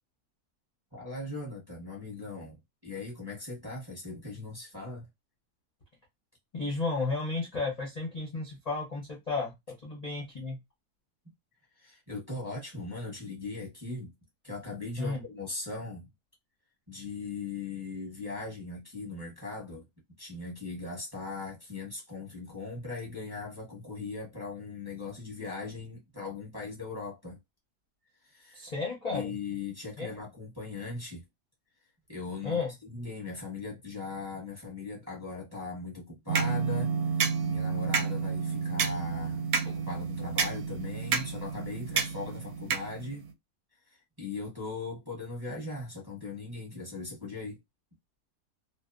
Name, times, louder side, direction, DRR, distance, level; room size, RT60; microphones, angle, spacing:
voice 1, 0.9-2.6 2.8-5.1 11.7-14.1 14.4-16.1 16.9-19.9 20.2-27.4 28.2-28.6 29.1-31.2 32.1-43.3 43.9-47.6, left 3 dB, 20° right, 0.7 m, -39 dB
voice 2, 6.5-10.6 15.0-15.2 28.5-29.3 30.0-30.1 32.4-32.7, left 3 dB, 45° left, 0.5 m, -33 dB
sound 1, 36.3-43.3, right 5 dB, 75° right, 1.0 m, -30 dB
2.7 x 2.1 x 2.4 m
omnidirectional pair, 1.7 m